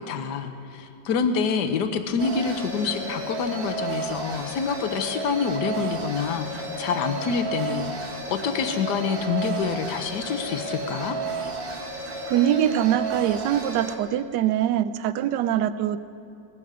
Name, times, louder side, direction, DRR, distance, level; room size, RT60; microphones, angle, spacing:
voice 1, 0.0-11.2, left 6 dB, 70° left, 8 dB, 1.4 m, -27 dB
sound 1, 2.2-14.0, right 3 dB, 35° right, 1.5 m, -32 dB
voice 2, 12.3-16.0, right 11 dB, 75° right, 13 dB, 1.2 m, -23 dB
18.5 x 14.5 x 4.9 m, 2.7 s
omnidirectional pair, 2.0 m